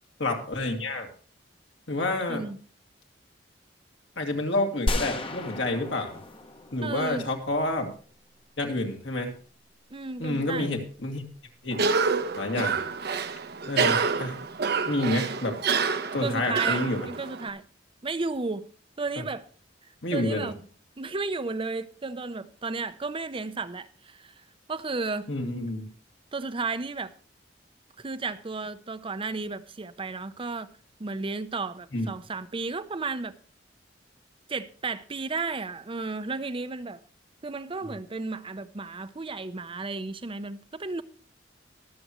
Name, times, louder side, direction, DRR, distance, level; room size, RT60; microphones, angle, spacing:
voice 1, 0.2-1.1 1.9-2.4 4.2-6.2 6.7-7.9 8.6-9.3 10.2-11.2 11.6-11.8 12.3-12.8 13.7-14.4 14.8-15.6 16.1-17.1 19.2-19.3 20.0-20.5 25.3-25.9 31.9-32.1, left 2 dB, 70° left, 2.4 m, -29 dB
sound 1, 4.9-7.8, left 1 dB, 30° left, 1.0 m, -33 dB
voice 2, 6.8-7.3 9.9-10.7 16.2-17.6 18.0-18.7 19.0-19.5 20.1-20.6 21.0-24.3 24.7-25.3 26.3-27.1 28.0-30.7 31.0-33.4 34.5-37.0 37.4-41.0, right 3 dB, 30° right, 0.7 m, -33 dB
Cough, 11.7-17.5, right 5 dB, 60° right, 0.9 m, -28 dB
22.5 x 7.7 x 3.1 m
head